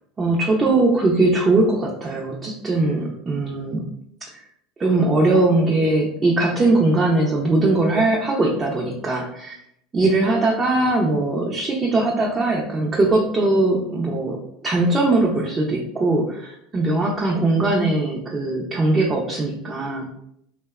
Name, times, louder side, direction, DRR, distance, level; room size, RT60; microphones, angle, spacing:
voice 1, 0.2-3.8 4.2-4.4 4.8-9.6 9.9-14.4 14.6-20.1, right 2 dB, 25° right, -3 dB, 0.4 m, -20 dB
2.7 x 2.1 x 2.3 m, 0.74 s
supercardioid pair, 115°, 0 cm